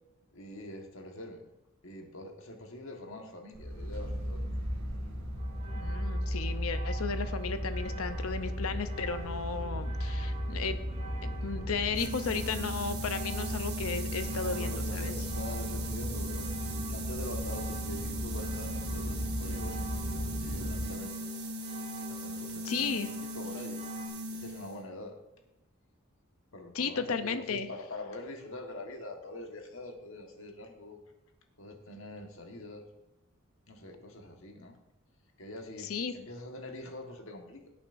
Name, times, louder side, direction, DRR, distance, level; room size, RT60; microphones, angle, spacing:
voice 1, 0.3-1.4 1.8-4.4 14.4-16.5 16.9-21.3 22.1-23.8 24.3-25.2 26.5-31.0 31.6-32.8 33.7-34.8 35.4-37.7, left 1 dB, 65° left, 3 dB, 1.5 m, -44 dB
sound 1, 3.5-20.9, equal, 75° right, 3.5 m, -36 dB
sound 2, 5.4-24.1, right 4 dB, 35° right, 3.6 m, -49 dB
voice 2, 5.7-10.8 11.2-15.1 22.6-23.1 26.7-27.7 35.8-36.1, left 5 dB, 85° left, 10 dB, 0.7 m, -34 dB
sound 3, 11.9-24.9, right 1 dB, 50° right, 1.4 m, -39 dB
17.5 x 8.6 x 2.6 m, 0.89 s
head